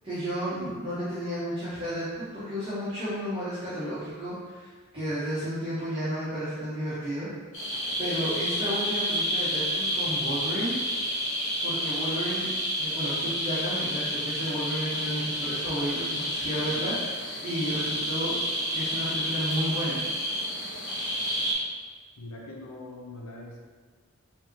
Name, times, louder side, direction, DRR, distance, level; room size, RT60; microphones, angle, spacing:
voice 1, 0.0-7.3 8.0-10.8 11.6-12.5 12.8-18.3 18.7-20.0, equal, 25° right, -13 dB, 1.0 m, -32 dB
sound 1, 7.5-21.5, equal, 65° left, 1.1 m, -30 dB
voice 2, 22.2-23.6, left 2 dB, 85° left, -2 dB, 0.6 m, -42 dB
4.8 x 2.8 x 2.9 m, 1.5 s
head